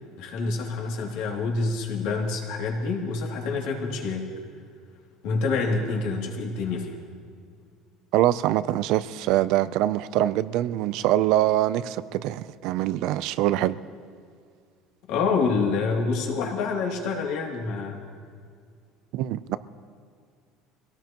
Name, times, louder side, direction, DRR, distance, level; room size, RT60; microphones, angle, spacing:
voice 1, 0.2-4.3 5.2-7.0 15.1-18.0, left 4 dB, 65° left, 0 dB, 2.6 m, -27 dB
voice 2, 8.1-13.8 19.1-19.6, right 14 dB, 55° right, 15 dB, 0.4 m, -24 dB
24.0 x 17.5 x 3.0 m, 2.1 s
cardioid pair, 175°, 0 cm